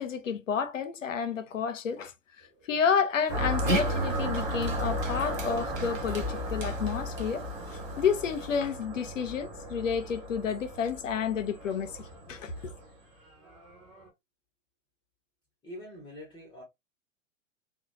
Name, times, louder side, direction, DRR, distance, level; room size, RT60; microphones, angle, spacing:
voice 1, 0.0-12.7, left 7 dB, 70° left, 0.6 m, -31 dB
sound 1, 2.4-14.1, left 3 dB, 25° right, 1.3 m, -45 dB
sound 2, 3.3-12.9, equal, 10° right, 0.4 m, -35 dB
Dog, 3.3-8.6, right 3 dB, 80° right, 0.9 m, -38 dB
voice 2, 15.6-16.6, left 1 dB, 10° left, 1.0 m, -44 dB
2.9 x 2.3 x 2.6 m
figure-of-eight pair, 105°, 39 cm